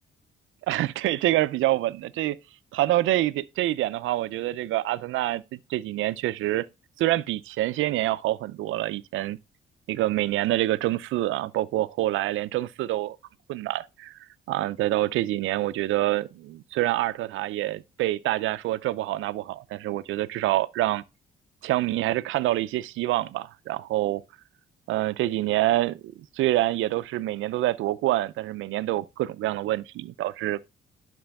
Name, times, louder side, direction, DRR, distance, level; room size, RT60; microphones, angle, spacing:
voice 1, 0.7-2.4 2.7-6.7 7.0-9.4 9.9-13.2 13.5-14.2 14.5-21.0 21.6-24.2 24.9-26.0 26.3-30.6, right 15 dB, 85° right, 0.6 m, -26 dB
11.5 x 6.2 x 3.5 m
cardioid pair, 90°, 20 cm